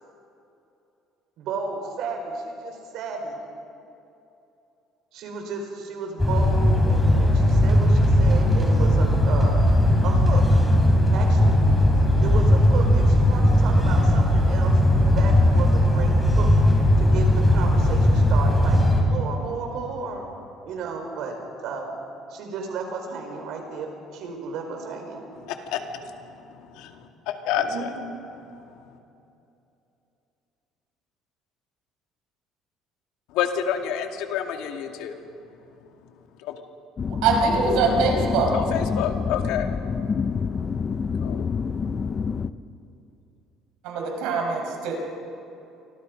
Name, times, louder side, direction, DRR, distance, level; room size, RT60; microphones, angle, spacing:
voice 1, 1.4-3.4 5.1-9.5 10.0-10.6 11.1-11.6 12.2-14.7 15.1-16.5 17.0-18.8 19.1-20.3 20.6-21.4 21.6-21.9 22.3-25.2 27.6-27.9, right 4 dB, 55° right, 3 dB, 4.8 m, -33 dB
sound 1, 6.2-19.0, left 1 dB, 5° left, 3.3 m, -18 dB
voice 2, 25.4-27.9 33.3-35.2 36.4-36.6 38.5-39.7 41.2-41.4, left 9 dB, 80° left, 4 dB, 2.3 m, -29 dB
sound 2, 37.0-42.5, left 5 dB, 25° left, 0.5 m, -27 dB
voice 3, 37.2-38.5 43.8-45.0, right 4 dB, 80° right, 1 dB, 5.5 m, -23 dB
29.5 x 24.5 x 5.3 m, 2.8 s
cardioid pair, 175°, 0 cm